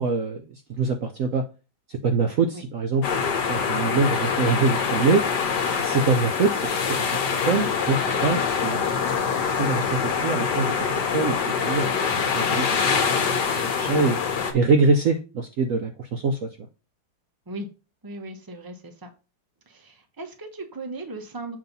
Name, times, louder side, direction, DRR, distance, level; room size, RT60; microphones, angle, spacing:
voice 1, 0.0-1.5 1.9-3.2 3.5-5.3 5.8-7.1 7.5-8.8 9.6-10.8 11.1-13.1 13.3-14.2 14.5-16.5, right 4 dB, 65° right, 5 dB, 0.8 m, -24 dB
sound 1, 3.0-14.5, left 6 dB, 65° left, 1.6 m, -24 dB
voice 2, 18.0-19.1 19.7-21.6, right 2 dB, 30° right, 5 dB, 0.4 m, -37 dB
7.5 x 2.8 x 5.3 m, 0.31 s
omnidirectional pair, 2.0 m